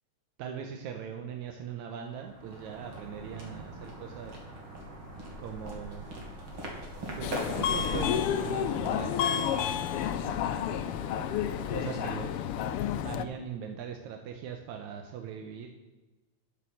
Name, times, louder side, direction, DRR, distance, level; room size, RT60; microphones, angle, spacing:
voice 1, 0.4-4.4 5.4-6.1 7.1-9.2 11.7-12.5 13.0-15.7, right 8 dB, 85° right, 4 dB, 2.3 m, -40 dB
sound 1, 1.9-12.7, right 1 dB, 45° right, 3.1 m, -42 dB
Subway metro underground, 7.2-13.2, left 9 dB, 90° left, 1.2 m, -30 dB
12.5 x 6.8 x 7.6 m, 1.1 s
omnidirectional pair, 3.3 m